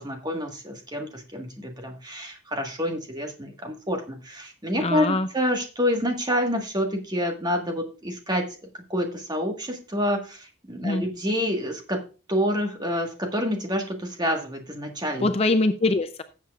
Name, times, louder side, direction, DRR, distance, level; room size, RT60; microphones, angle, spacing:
voice 1, 0.0-8.4 8.9-12.0 12.3-15.3, equal, 20° right, 3 dB, 1.5 m, -28 dB
voice 2, 4.8-5.3 10.8-11.0 15.2-16.2, left 2 dB, 30° left, 9 dB, 0.4 m, -23 dB
17.0 x 7.4 x 2.4 m, 0.33 s
head